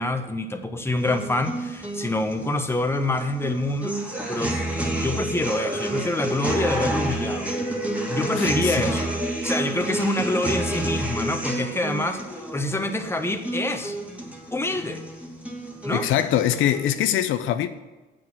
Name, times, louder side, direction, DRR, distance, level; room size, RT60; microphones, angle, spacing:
voice 1, 0.0-4.0 4.3-7.5 8.1-9.1 9.4-12.2 12.5-14.0 14.5-15.0 15.8-16.1, left 2 dB, 10° left, 1.2 m, -26 dB
sound 1, 1.0-17.0, right 1 dB, 5° right, 2.3 m, -29 dB
voice 2, 8.3-8.9 15.9-17.7, left 11 dB, 85° left, 0.7 m, -23 dB
8.5 x 6.1 x 7.7 m
cardioid pair, 90°, 20 cm